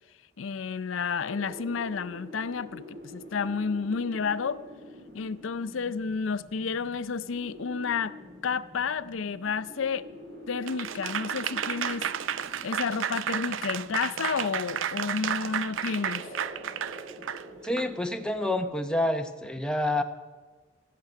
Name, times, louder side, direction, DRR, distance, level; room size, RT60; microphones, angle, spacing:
voice 1, 0.4-4.6 5.1-8.2 8.4-10.1 10.5-12.1 12.6-16.3, left 5 dB, 90° left, 15 dB, 0.5 m, -31 dB
sound 1, 1.3-19.1, equal, 65° right, 3.0 m, -46 dB
Applause / Crowd, 10.7-17.9, right 9 dB, 80° right, 0.5 m, -32 dB
voice 2, 17.6-20.0, left 1 dB, 5° left, 5 dB, 0.8 m, -28 dB
15.0 x 6.7 x 9.1 m, 1.4 s
head